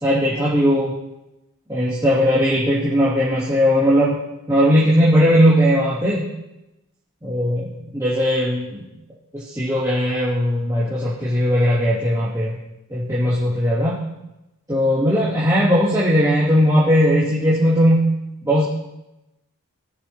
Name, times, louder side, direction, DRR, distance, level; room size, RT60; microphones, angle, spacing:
voice 1, 0.0-0.9 1.7-4.1 4.5-6.2 7.2-8.9 9.3-12.6 12.9-14.0 14.7-18.1 18.4-18.6, equal, 15° right, -12 dB, 2.9 m, -18 dB
18.5 x 6.8 x 3.2 m, 0.95 s
head